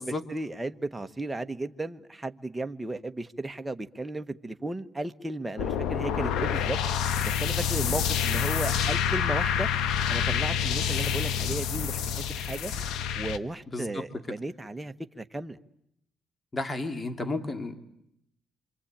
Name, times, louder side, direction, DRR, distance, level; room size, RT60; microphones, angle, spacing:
voice 1, 0.0-6.8 7.2-9.7 10.1-12.0 12.4-12.7 13.2-15.6 17.2-17.3, right 2 dB, 10° right, 8 dB, 1.3 m, -35 dB
sound 1, 5.6-13.4, left 8 dB, 90° left, 1.2 m, -27 dB
voice 2, 13.7-14.0 16.5-17.8, left 2 dB, 25° left, 7 dB, 2.6 m, -32 dB
26.5 x 25.0 x 8.9 m, 0.77 s
cardioid pair, 90°, 0 cm